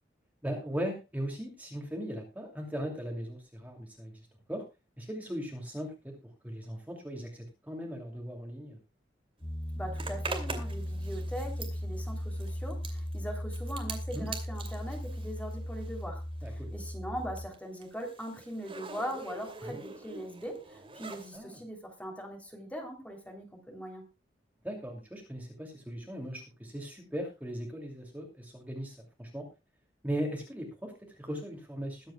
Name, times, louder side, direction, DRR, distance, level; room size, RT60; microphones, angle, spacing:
voice 1, 0.4-4.1 4.5-4.6 5.0-6.2 6.4-8.8 14.1-14.3 16.4-16.7 19.6-19.8 21.3-21.6 24.6-29.5 30.0-32.1, equal, 10° right, 1 dB, 2.7 m, -38 dB
Piano, 9.4-17.5, equal, 25° left, 3.4 m, -37 dB
voice 2, 9.8-16.2 16.5-24.1, equal, 10° left, 2 dB, 3.2 m, -41 dB
Zipper (clothing), 10.0-16.1 16.4-21.4, right 4 dB, 30° right, 2.6 m, -44 dB
21.5 x 8.8 x 2.3 m, 0.27 s
head